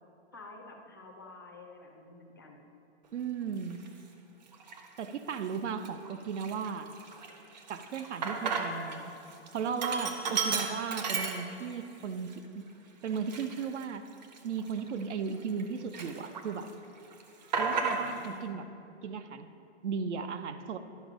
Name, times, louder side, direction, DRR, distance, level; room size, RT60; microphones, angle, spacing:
voice 1, 0.3-2.6 10.2-10.5 17.9-18.7, left 2 dB, 20° left, 0 dB, 0.4 m, -50 dB
voice 2, 3.1-3.8 5.0-6.9 7.7-9.1 9.5-12.6 13.0-14.1 14.4-16.7 17.6-18.6 19.0-19.5 19.8-20.8, right 6 dB, 75° right, 10 dB, 0.7 m, -36 dB
Sink (filling or washing), 3.7-3.9 4.5-5.1 5.5-5.6 5.8-9.0 9.3-11.9 12.3-12.4 13.1-15.6 15.9-16.7 17.0-18.3, right 5 dB, 35° right, 0.7 m, -34 dB
11.5 x 5.3 x 5.0 m, 2.7 s
hypercardioid pair, 175°, 35 cm